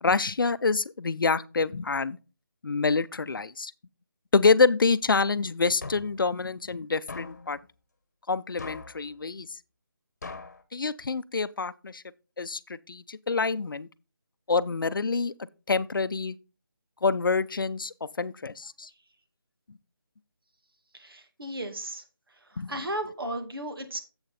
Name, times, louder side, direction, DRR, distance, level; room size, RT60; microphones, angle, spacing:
voice 1, 0.0-2.2 2.6-3.7 4.3-7.6 8.3-9.6 10.7-12.0 12.4-13.9 14.5-15.3 15.7-16.4 17.0-18.9 22.6-22.7, left 4 dB, 70° left, 0.5 m, -26 dB
sound 1, 5.8-6.2 7.1-7.5 8.6-9.0 10.2-10.6, left 3 dB, 50° left, 1.1 m, -40 dB
voice 2, 20.9-22.0 22.7-24.0, right 1 dB, 90° right, 2.2 m, -34 dB
7.9 x 7.2 x 4.1 m
figure-of-eight pair, 175°, 12 cm